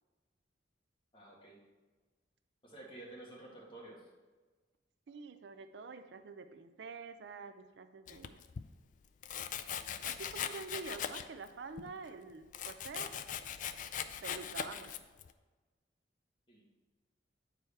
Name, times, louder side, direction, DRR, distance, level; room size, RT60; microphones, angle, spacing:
voice 1, 1.1-1.5 2.6-4.1 16.5-16.6, right 2 dB, 30° left, -4 dB, 2.0 m, -51 dB
voice 2, 5.1-8.4 10.0-13.1 14.2-15.0, right 4 dB, 65° right, 10 dB, 0.4 m, -47 dB
Domestic sounds home sounds, 8.1-8.7 9.2-11.5 11.8-15.3, left 8 dB, 45° left, 0.4 m, -41 dB
8.5 x 4.9 x 4.4 m, 1.3 s
head